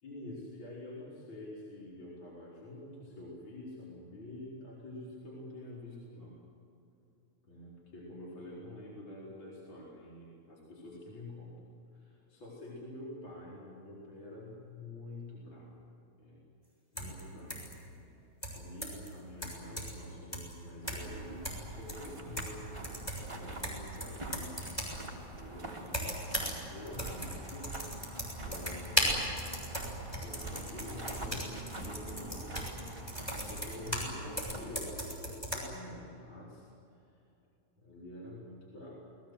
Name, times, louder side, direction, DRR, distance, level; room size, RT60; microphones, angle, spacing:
voice 1, 0.0-6.3 7.5-11.5 11.9-15.7 16.2-16.4 16.9-25.1 25.4-26.2 26.6-27.7 28.4-29.3 30.2-32.5 32.9-33.1 33.4-36.7 37.8-39.0, left 1 dB, 40° left, -5 dB, 5.2 m, -47 dB
sound 1, 17.0-17.2 17.5-17.7 18.4-19.1 19.4-20.0 20.3-20.5 20.9-21.1 21.4-22.6 22.8-25.0 25.9-26.6 26.9-34.1 34.4-35.6, equal, 5° left, 6.8 m, -37 dB
sound 2, 20.8-34.7, right 2 dB, 10° right, 2.9 m, -45 dB
29.0 x 21.0 x 8.0 m, 2.8 s
omnidirectional pair, 3.6 m